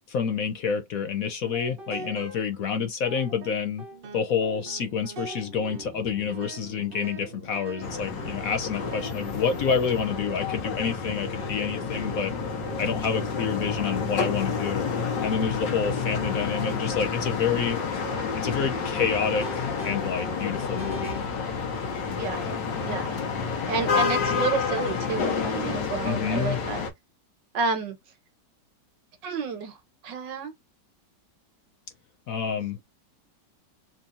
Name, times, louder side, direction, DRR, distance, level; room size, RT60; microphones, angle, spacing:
voice 1, 0.1-3.8 4.1-12.3 12.8-14.9 15.2-17.8 18.4-21.2 26.0-26.6 32.3-32.8, left 6 dB, 65° left, 0.9 m, -28 dB
sound 1, 1.4-2.6 3.0-10.8 11.2-21.3, right 3 dB, 40° right, 0.8 m, -43 dB
sound 2, 7.8-26.9, left 5 dB, 85° left, 1.9 m, -29 dB
voice 2, 22.1-23.2 23.7-26.8 27.5-28.0 29.2-29.8 30.0-30.5 32.6-32.7, right 5 dB, 75° right, 1.8 m, -30 dB
4.5 x 2.7 x 2.5 m
omnidirectional pair, 1.9 m